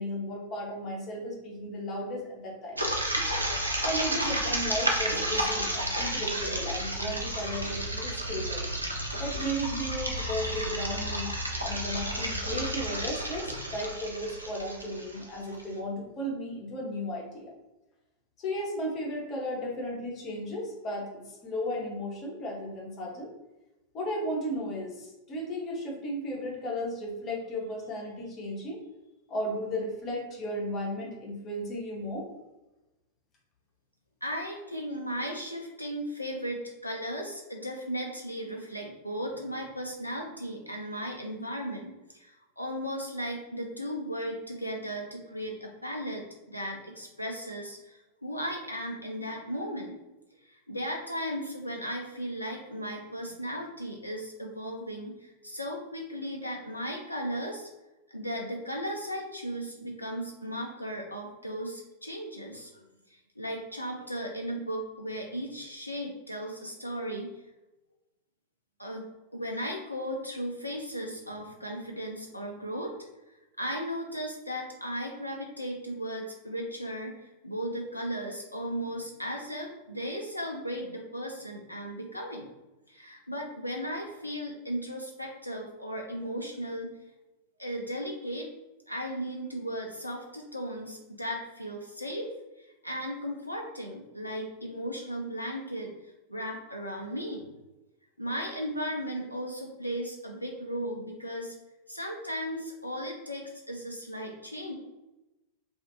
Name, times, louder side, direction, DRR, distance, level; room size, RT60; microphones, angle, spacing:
voice 1, 0.0-2.9 3.8-8.6 9.2-11.3 11.6-17.5 18.4-23.3 23.9-28.8 29.3-32.3, equal, 30° left, -2 dB, 0.8 m, -35 dB
sound 1, 2.8-15.6, right 1 dB, 85° right, 0.4 m, -31 dB
voice 2, 34.2-50.0 50.4-57.7 58.1-67.3 68.8-69.0 69.3-73.0 73.6-82.5 82.9-86.9 87.6-88.5 88.9-92.3 92.6-95.9 96.3-97.4 98.2-101.5 101.9-104.7, equal, 85° left, 0 dB, 0.3 m, -36 dB
2.4 x 2.4 x 2.5 m, 1.0 s
figure-of-eight pair, 90°, 0 cm